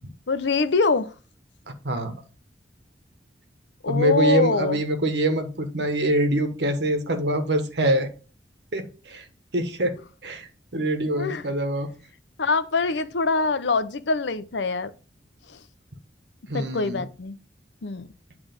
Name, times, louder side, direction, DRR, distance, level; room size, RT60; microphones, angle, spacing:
voice 1, 0.3-1.1 3.8-4.8 11.2-11.5 12.4-14.9 15.5-15.6 16.5-17.4 17.8-18.1, left 4 dB, 90° left, 0.7 m, -24 dB
voice 2, 3.9-8.1 8.7-9.2 9.5-10.0 10.2-11.9 16.5-17.0, right 1 dB, 70° right, 1.4 m, -24 dB
9.1 x 3.5 x 5.2 m
head